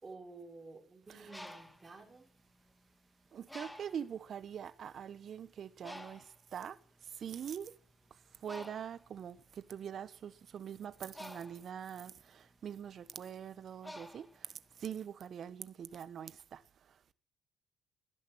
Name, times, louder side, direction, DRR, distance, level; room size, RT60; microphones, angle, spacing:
voice 1, 0.0-2.3, right 3 dB, 30° right, 5.9 m, -51 dB
Bird, 1.1-2.9 3.5-4.2 4.8-5.0 5.2-15.0, left 1 dB, 10° left, 2.3 m, -52 dB
voice 2, 3.3-6.8 7.1-7.7 8.4-16.6, right 8 dB, 55° right, 1.2 m, -44 dB
18.0 x 11.0 x 6.5 m
hypercardioid pair, 55°, 0 cm